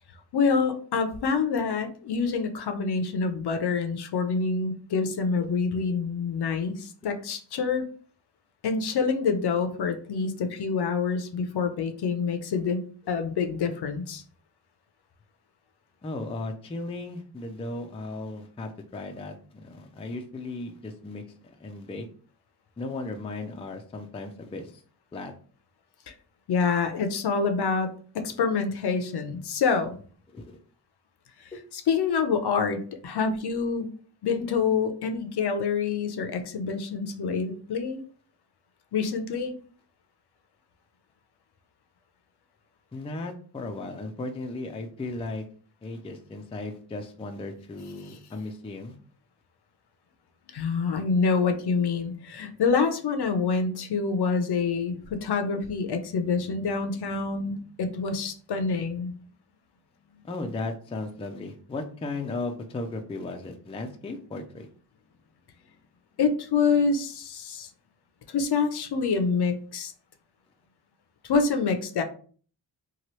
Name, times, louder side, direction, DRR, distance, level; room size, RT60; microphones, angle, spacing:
voice 1, 0.3-7.8 8.6-14.2 26.1-26.2 26.5-30.0 31.4-33.9 34.2-38.0 38.9-39.5 50.5-59.1 60.1-60.2 66.2-67.7 68.3-69.9 71.2-72.0, left 5 dB, 55° left, 7 dB, 0.6 m, -27 dB
voice 2, 16.0-22.1 22.8-24.8 25.1-25.3 30.3-30.6 31.5-31.6 42.9-45.5 45.8-49.0 60.2-64.7, left 2 dB, 15° left, 4 dB, 0.4 m, -36 dB
2.9 x 2.3 x 3.0 m, 0.43 s
cardioid pair, 75°, 47 cm